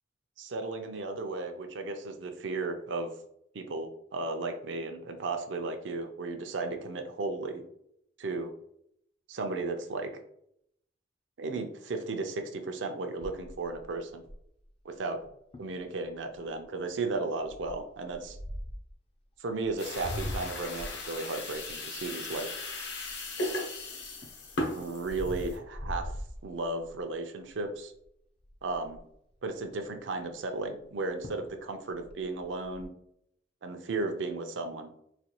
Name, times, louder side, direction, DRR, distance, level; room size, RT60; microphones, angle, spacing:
voice 1, 0.4-3.1 3.5-7.6 8.2-8.5 9.3-10.1 11.4-14.2 14.8-15.2 15.6-18.4 19.4-22.5 24.7-26.1 26.4-27.9 28.6-29.0 29.4-32.9 33.6-34.9, right 3 dB, 80° right, 5 dB, 0.5 m, -35 dB
sound 1, 13.2-14.7 15.2-15.3 15.5-15.8 16.3-16.6 17.5-18.9 19.6-23.5 24.0-27.0 27.5-27.8 28.0-28.1 28.4-29.1 30.8-30.9 31.2-31.6 31.9-32.9, left 1 dB, 30° left, 0.4 m, -41 dB
sound 2, 19.8-25.6, left 1 dB, 65° left, 0.8 m, -37 dB
4.1 x 2.2 x 2.9 m, 0.73 s
head